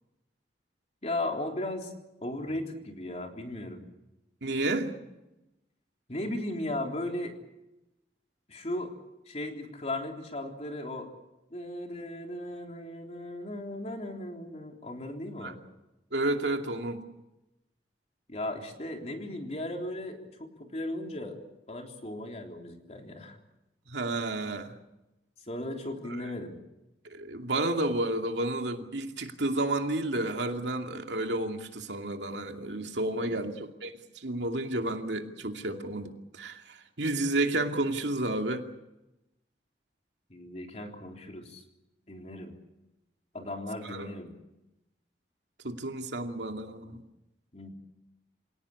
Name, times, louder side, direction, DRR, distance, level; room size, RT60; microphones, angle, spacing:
voice 1, 1.0-1.9 2.2-3.9 6.1-7.3 8.5-8.9 9.3-11.1 11.5-15.6 18.3-21.4 21.7-23.4 25.5-26.6 33.2-33.4 40.3-41.6 42.1-42.5 43.3-44.3 47.5-47.7, left 1 dB, 40° left, 2 dB, 3.6 m, -36 dB
voice 2, 4.4-5.0 15.4-15.5 16.1-17.0 23.9-24.7 26.1-26.3 27.1-38.7 43.8-44.1 45.6-47.0, right 2 dB, 90° right, 4 dB, 2.5 m, -31 dB
27.0 x 18.0 x 8.4 m, 0.96 s
head